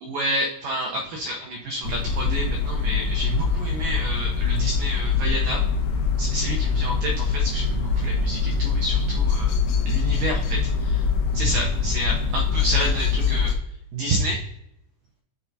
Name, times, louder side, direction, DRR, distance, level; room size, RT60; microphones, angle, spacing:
voice 1, 0.0-5.6 6.2-9.5 9.9-11.1 11.3-13.5 13.9-14.4, right 1 dB, 85° right, 1 dB, 1.9 m, -29 dB
sound 1, 1.8-13.6, left 5 dB, 75° left, 2.1 m, -23 dB
10.0 x 4.3 x 2.7 m, 0.78 s
omnidirectional pair, 5.1 m